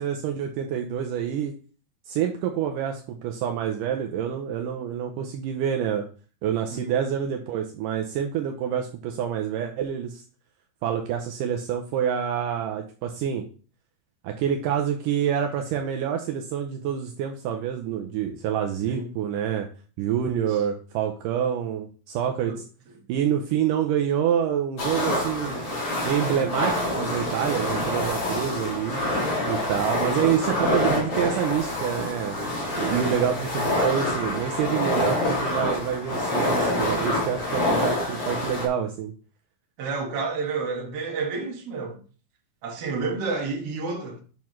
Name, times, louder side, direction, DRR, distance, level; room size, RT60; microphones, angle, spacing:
voice 1, 0.0-1.5 2.1-6.1 6.4-10.2 10.8-13.4 14.2-19.7 20.0-22.6 23.1-25.6 26.0-29.0 29.5-32.4 32.8-39.1, right 9 dB, 85° right, 1.8 m, -27 dB
voice 2, 20.3-20.6 22.5-22.6 26.4-26.7 29.9-30.3 32.9-33.1 33.4-33.5 39.8-42.0 42.6-44.2, right 4 dB, 50° right, 1.9 m, -31 dB
sound 1, 24.8-38.7, left 1 dB, 45° left, 2.4 m, -26 dB
9.0 x 5.8 x 3.1 m
omnidirectional pair, 4.6 m